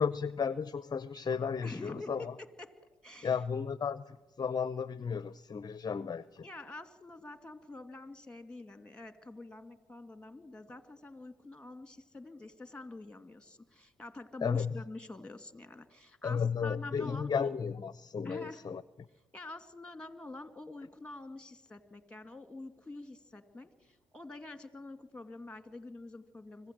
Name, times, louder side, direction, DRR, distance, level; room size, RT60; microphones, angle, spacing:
voice 1, 0.0-2.3 3.2-6.5 14.4-14.7 16.2-18.8, left 6 dB, 30° left, 17 dB, 0.6 m, -34 dB
voice 2, 1.6-2.7 3.0-3.4 6.4-17.5 18.2-18.6 19.3-26.7, left 2 dB, 10° left, 10 dB, 2.3 m, -46 dB
25.0 x 15.5 x 7.7 m, 1.2 s
hypercardioid pair, 55°, 13 cm